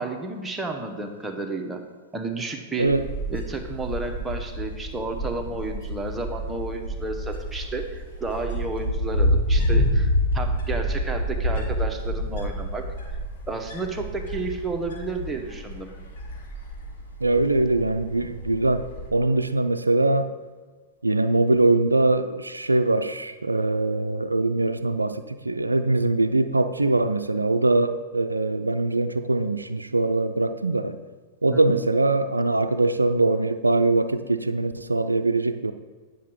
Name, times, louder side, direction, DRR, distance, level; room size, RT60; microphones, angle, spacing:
voice 1, 0.0-1.8 2.1-3.0 3.3-12.9 13.5-15.9 31.5-31.8, right 3 dB, 10° right, 3 dB, 1.0 m, -32 dB
Wind, 2.8-19.1, equal, 55° left, 2.8 m, -28 dB
voice 2, 17.2-18.8 19.1-20.3 21.0-31.0 31.4-35.7, right 2 dB, 85° right, 9 dB, 0.4 m, -22 dB
9.8 x 6.3 x 4.5 m, 1.4 s
figure-of-eight pair, 100°, 0 cm